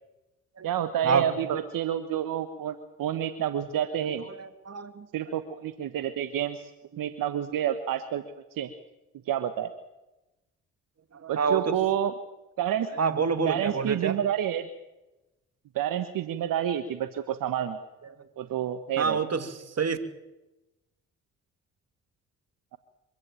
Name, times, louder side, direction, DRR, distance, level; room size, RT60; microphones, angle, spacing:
voice 1, 0.6-4.2 5.1-6.7 7.0-8.2 8.6-8.7 9.3-9.7 11.3-12.1 12.6-12.9 13.4-14.7 15.7-17.8 18.4-19.2, right 10 dB, 70° right, 10 dB, 1.4 m, -29 dB
voice 2, 4.3-5.1 11.2-11.8 13.0-14.2 19.0-20.0, right 5 dB, 45° right, 10 dB, 2.6 m, -27 dB
24.5 x 15.5 x 9.0 m, 1.0 s
hypercardioid pair, 50°, 35 cm